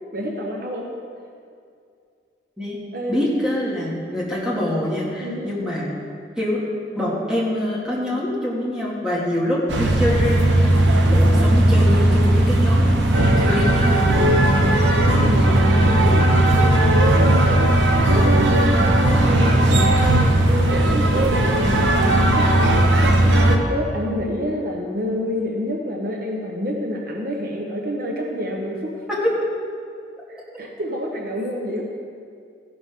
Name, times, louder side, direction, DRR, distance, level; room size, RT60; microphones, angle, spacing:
voice 1, 0.1-0.9 2.9-3.2 5.2-5.6 14.5-17.7 18.0-18.8 19.2-29.0 30.3-31.8, equal, 50° right, 0 dB, 1.0 m, -28 dB
voice 2, 3.1-5.9 6.4-6.6 6.9-14.1 29.2-29.3, left 1 dB, 5° right, -7 dB, 2.3 m, -25 dB
sound 1, 9.7-23.6, right 1 dB, 70° right, 1.0 m, -16 dB
15.0 x 11.0 x 3.7 m, 2.3 s
head